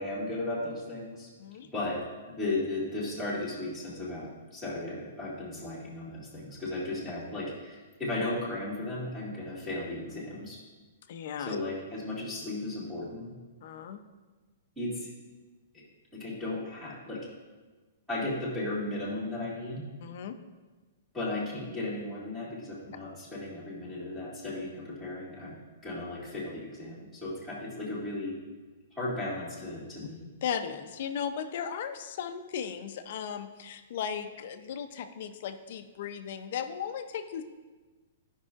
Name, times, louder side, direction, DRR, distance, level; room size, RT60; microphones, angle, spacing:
voice 1, 0.0-1.3 1.7-10.6 11.4-13.3 14.8-15.1 15.7-15.8 16.1-17.3 18.1-19.9 21.1-28.4 29.0-30.3, left 2 dB, 5° right, -10 dB, 1.9 m, -35 dB
voice 2, 11.1-11.6 13.6-14.0 20.0-20.3 30.4-37.4, left 8 dB, 50° left, 8 dB, 0.5 m, -36 dB
13.0 x 5.5 x 2.5 m, 1.3 s
hypercardioid pair, 165°, 0 cm